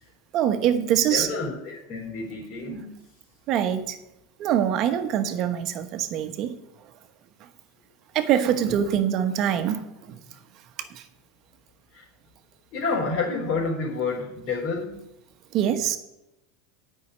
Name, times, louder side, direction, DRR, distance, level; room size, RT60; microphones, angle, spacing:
voice 1, 0.3-1.3 2.7-2.8 3.5-4.0 4.4-6.6 8.1-10.2 10.9-11.0 15.5-16.0, right 10 dB, 50° right, 9 dB, 1.1 m, -24 dB
voice 2, 1.0-2.9 8.7-8.8 11.9-12.0 12.7-15.0, left 4 dB, 50° left, -5 dB, 4.1 m, -29 dB
9.4 x 5.7 x 8.2 m, 0.88 s
supercardioid pair, 125°, 0 cm